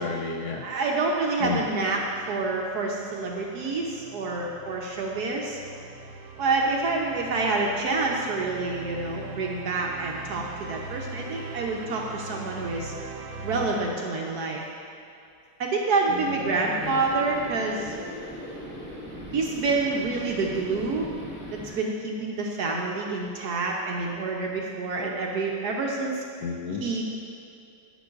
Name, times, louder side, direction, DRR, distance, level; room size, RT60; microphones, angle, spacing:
voice 1, 0.0-0.6 1.4-1.6 16.1-17.0 25.0-25.2 26.4-26.8, left 4 dB, 70° left, 0 dB, 1.0 m, -33 dB
voice 2, 0.6-2.0 2.3-5.6 6.4-12.9 13.4-14.6 15.6-17.9 19.3-21.1 21.5-26.2 26.8-27.0, right 3 dB, 65° right, -1 dB, 1.0 m, -27 dB
sound 1, 0.9-13.8, right 3 dB, 90° right, 1.5 m, -42 dB
sound 2, 16.7-21.8, equal, 5° right, 1.3 m, -39 dB
13.0 x 6.0 x 2.4 m, 2.5 s
omnidirectional pair, 2.1 m